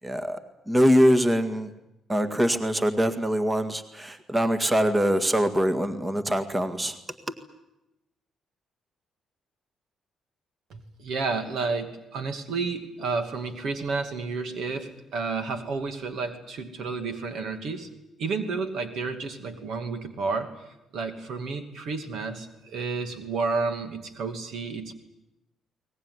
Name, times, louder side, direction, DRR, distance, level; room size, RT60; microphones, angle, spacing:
voice 1, 0.0-0.4 0.7-1.7 2.1-7.0, equal, 15° right, 9 dB, 1.8 m, -23 dB
voice 2, 10.7-17.9 18.2-20.5 20.9-24.9, right 4 dB, 70° right, 7 dB, 2.6 m, -31 dB
22.0 x 19.5 x 9.7 m, 0.92 s
cardioid pair, 90°, 0 cm